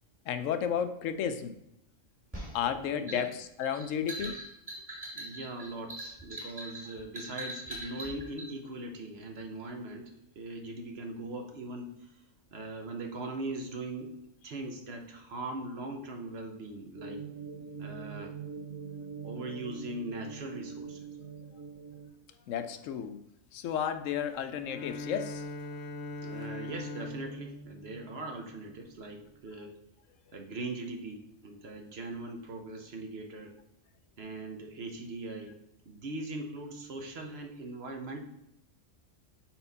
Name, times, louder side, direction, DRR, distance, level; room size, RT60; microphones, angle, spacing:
voice 1, 0.3-1.6 2.5-4.4 22.5-23.2 23.5-25.4, left 8 dB, 90° left, 9 dB, 1.0 m, -32 dB
sound 1, 2.3-8.5, right 1 dB, 10° right, 2.1 m, -42 dB
voice 2, 5.1-12.1 12.5-14.1 14.4-17.3 17.8-18.3 19.2-21.1 26.2-29.7 30.3-33.5 34.2-35.6 35.9-38.2, right 2 dB, 60° right, 3 dB, 1.0 m, -40 dB
sound 2, 17.0-22.1, right 6 dB, 85° right, 1.2 m, -43 dB
Bowed string instrument, 24.7-29.0, left 2 dB, 65° left, 0.8 m, -41 dB
4.4 x 4.0 x 5.3 m, 0.81 s
omnidirectional pair, 1.3 m